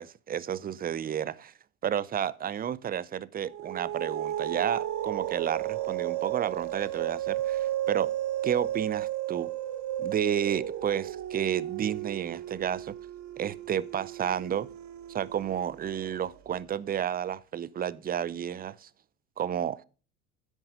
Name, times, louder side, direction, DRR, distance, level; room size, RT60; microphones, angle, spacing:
voice 1, 0.0-1.5 1.8-8.1 8.4-9.5 10.0-13.0 13.4-14.7 15.1-18.9 19.4-19.8, right 9 dB, 20° right, 0.5 m, -31 dB
sound 1, 3.5-16.3, right 12 dB, 45° right, 1.0 m, -34 dB
9.8 x 8.1 x 5.1 m
hypercardioid pair, 70°, 42 cm